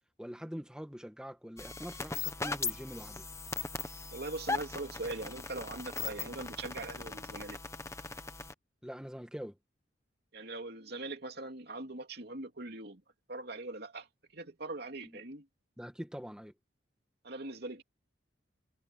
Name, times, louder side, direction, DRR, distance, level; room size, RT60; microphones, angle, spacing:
voice 1, 0.2-3.3 8.8-9.6 15.0-15.2 15.8-16.5, equal, 5° right, 2.0 m, -44 dB
sound 1, 1.6-8.5, left 4 dB, 15° left, 1.3 m, -39 dB
voice 2, 4.1-7.6 10.3-13.0 13.3-14.1 14.3-15.5 17.2-17.8, right 2 dB, 60° right, 3.0 m, -41 dB
head